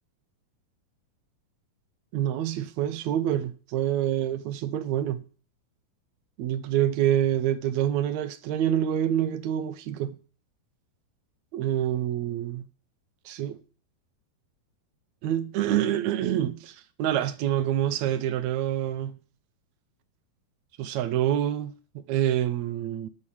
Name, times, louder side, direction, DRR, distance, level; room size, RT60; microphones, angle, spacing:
voice 1, 2.1-5.2 6.4-10.2 11.5-12.7 13.2-13.6 15.2-19.2 20.8-21.7 22.1-23.1, right 11 dB, 80° right, 1.6 m, -26 dB
13.5 x 4.7 x 7.2 m
omnidirectional pair, 4.4 m